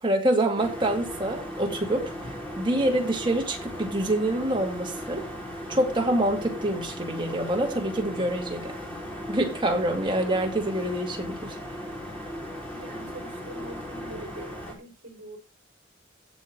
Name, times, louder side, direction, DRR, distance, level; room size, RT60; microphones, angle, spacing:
voice 1, 0.0-5.2 5.7-8.7 9.3-11.6, right 1 dB, 25° right, 2.4 m, -26 dB
sound 1, 0.6-14.7, equal, 5° left, 3.3 m, -37 dB
voice 2, 12.7-15.4, right 1 dB, 60° right, 5.1 m, -43 dB
16.5 x 5.7 x 3.9 m
head